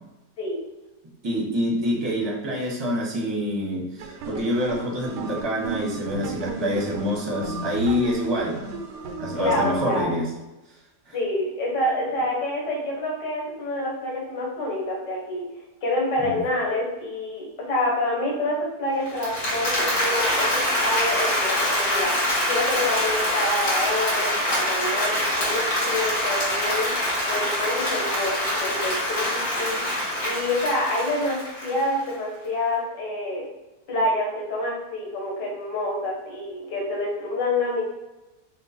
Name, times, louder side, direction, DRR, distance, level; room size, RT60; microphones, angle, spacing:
voice 1, 0.4-0.7 9.4-10.2 11.1-15.5 15.8-26.9 27.3-29.8 30.2-33.5 33.9-37.8, left 1 dB, 85° left, -3 dB, 1.6 m, -27 dB
voice 2, 1.2-3.9 4.3-8.7 9.2-10.3 11.1-11.2 16.2-16.4, equal, 20° right, -3 dB, 0.7 m, -26 dB
sound 1, 4.0-10.0, right 3 dB, 85° right, 1.3 m, -34 dB
Applause, 19.1-32.1, left 1 dB, 60° left, 2.1 m, -25 dB
4.4 x 2.1 x 4.2 m, 1.0 s
omnidirectional pair, 1.8 m